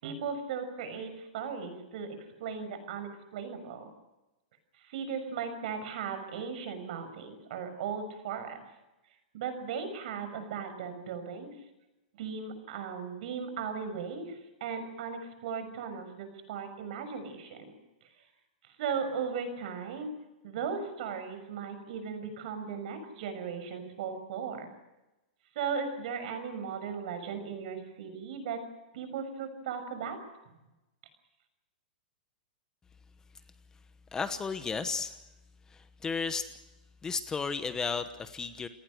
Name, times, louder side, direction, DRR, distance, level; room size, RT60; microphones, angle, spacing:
voice 1, 0.0-3.9 4.8-8.6 9.3-11.5 12.2-17.6 18.8-20.1 20.4-24.7 25.5-28.6 28.9-30.2, right 6 dB, 60° right, 9 dB, 6.5 m, -37 dB
voice 2, 34.1-35.1 35.7-36.5 37.0-38.7, left 5 dB, 10° left, 11 dB, 1.0 m, -33 dB
29.5 x 18.5 x 6.5 m, 1.0 s
hypercardioid pair, 150°, 5 cm